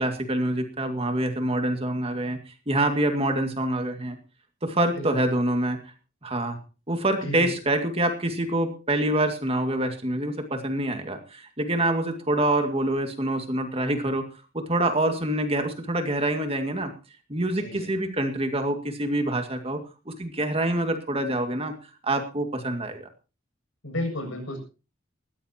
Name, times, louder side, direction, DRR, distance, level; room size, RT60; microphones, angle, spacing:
voice 1, 0.0-2.4 2.7-4.2 4.6-5.8 6.2-6.6 6.9-14.3 14.5-16.9 17.3-21.7 22.0-23.1, right 1 dB, 30° right, 6 dB, 2.2 m, -26 dB
voice 2, 4.9-5.2 7.2-7.5 17.6-17.9 23.8-24.6, left 1 dB, 80° left, 4 dB, 7.2 m, -32 dB
19.5 x 15.0 x 2.9 m, 0.32 s
head